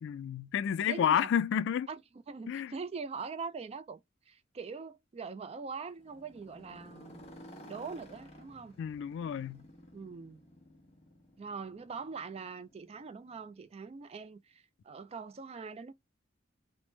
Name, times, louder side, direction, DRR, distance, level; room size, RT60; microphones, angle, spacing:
voice 1, 0.0-1.9 2.5-2.7 8.8-9.6, left 8 dB, 60° left, 0.3 m, -30 dB
voice 2, 0.8-1.3 1.9-2.0 2.3-4.0 4.3-7.3 7.7-8.7 9.9-10.4 11.4-15.9, right 5 dB, 30° right, 0.3 m, -42 dB
Motorcycle, 5.9-13.9, equal, 30° left, 0.9 m, -55 dB
3.2 x 2.0 x 3.0 m
head